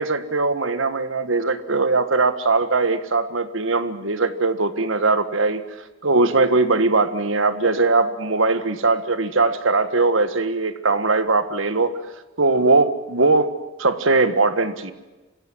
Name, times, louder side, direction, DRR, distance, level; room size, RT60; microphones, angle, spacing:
voice 1, 0.0-5.6 6.0-12.0 12.4-14.9, right 3 dB, 70° right, 12 dB, 1.6 m, -20 dB
27.5 x 16.5 x 9.5 m, 1.1 s
head